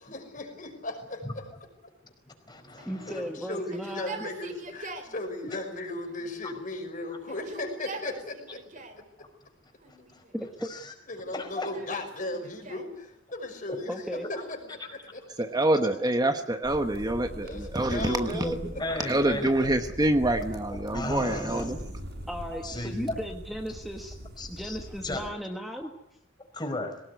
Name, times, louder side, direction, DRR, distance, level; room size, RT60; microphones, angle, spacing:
voice 1, 0.0-1.4 1.8-1.9 3.1-8.6 11.1-15.5 17.4-18.5 18.7-18.8 19.2-19.3, left 2 dB, 45° left, 5 dB, 5.8 m, -37 dB
voice 2, 2.3-3.2 5.4-5.6 6.4-6.5 9.2-9.3 9.9-10.2 10.6-10.9 11.3-11.7 13.7-13.8 15.8-15.9 18.3-19.5 20.6-22.0 22.6-23.2 24.4-24.8 25.0-25.2 26.5-27.0, left 2 dB, 20° left, 5 dB, 5.1 m, -35 dB
Yell, 2.8-5.2 6.0-6.8 7.2-9.1 9.8-10.5 11.2-13.0 14.3-15.2 16.0-17.8, right 3 dB, 40° right, 3.9 m, -45 dB
voice 3, 2.9-4.3 10.3-10.8 13.9-14.3 22.3-24.2 24.5-25.9, equal, ahead, 3 dB, 1.7 m, -36 dB
voice 4, 15.4-18.7 19.1-21.8, right 1 dB, 20° right, 7 dB, 1.1 m, -26 dB
sound 1, 16.6-25.3, equal, 60° right, 6.5 m, -42 dB
22.5 x 19.0 x 9.6 m, 0.79 s
head